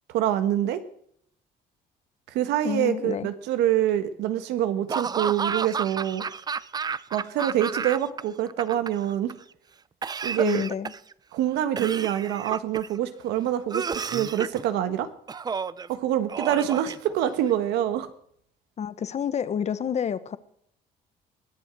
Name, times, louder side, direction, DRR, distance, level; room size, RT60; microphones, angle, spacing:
voice 1, 0.1-0.8 2.3-6.2 7.1-9.3 10.2-10.6 11.3-15.1 15.9-18.1, right 11 dB, 85° right, 11 dB, 1.5 m, -25 dB
voice 2, 2.6-3.3 10.4-10.9 18.8-20.4, left 8 dB, 40° left, 15 dB, 0.9 m, -28 dB
Laughter / Cough, 4.9-8.2 8.5-9.3 10.0-11.1 11.8-13.0 13.7-14.6 15.3-15.9 16.3-17.5, right 5 dB, 25° right, 0.5 m, -31 dB
21.0 x 7.7 x 6.0 m, 0.66 s
cardioid pair, 110°, 17 cm